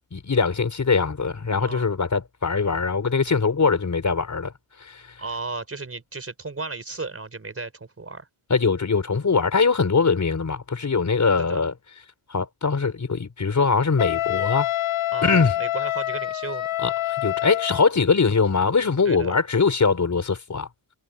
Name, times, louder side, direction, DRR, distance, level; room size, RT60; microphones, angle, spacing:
voice 1, 0.1-4.5 4.8-5.0 8.5-11.7 12.3-14.7 15.2-15.5 16.8-20.7, left 5 dB, 40° left, 5.0 m, -22 dB
voice 2, 5.2-8.3 11.5-11.6 15.1-16.7 19.0-19.4, right 3 dB, 30° right, 4.7 m, -34 dB
Wind instrument woodwind instrument, 14.0-17.9, left 13 dB, 85° left, 2.2 m, -26 dB
cardioid pair, 105°, 47 cm